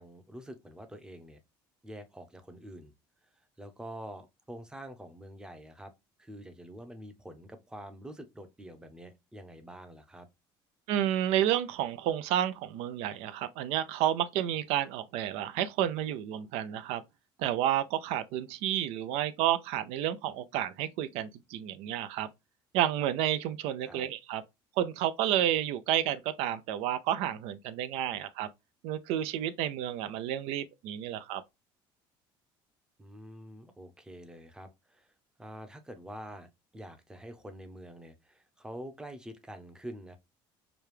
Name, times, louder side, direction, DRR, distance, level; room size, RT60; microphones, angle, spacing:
voice 1, 0.0-1.4 1.8-2.9 3.6-5.9 6.2-10.3 23.8-24.1 33.0-40.2, right 1 dB, 5° right, 0.6 m, -46 dB
voice 2, 10.9-17.0 17.4-22.3 22.7-24.4 24.8-28.5 28.8-31.4, right 11 dB, 75° right, 0.5 m, -30 dB
4.9 x 2.3 x 3.2 m
cardioid pair, 135°, 10 cm